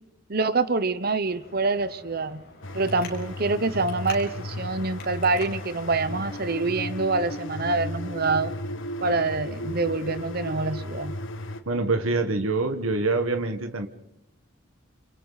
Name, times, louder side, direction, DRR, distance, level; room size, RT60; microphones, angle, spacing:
voice 1, 0.3-2.4 2.7-8.5 9.0-11.2, right 3 dB, 45° right, 14 dB, 1.0 m, -26 dB
Traffic noise roadway noise, 1.2-6.6, left 3 dB, 45° left, 6.5 m, -45 dB
sound 1, 2.6-11.6, left 1 dB, 65° left, 1.6 m, -35 dB
voice 2, 11.6-13.9, right 3 dB, 80° right, 6 dB, 1.7 m, -25 dB
29.0 x 27.5 x 4.2 m, 0.86 s
head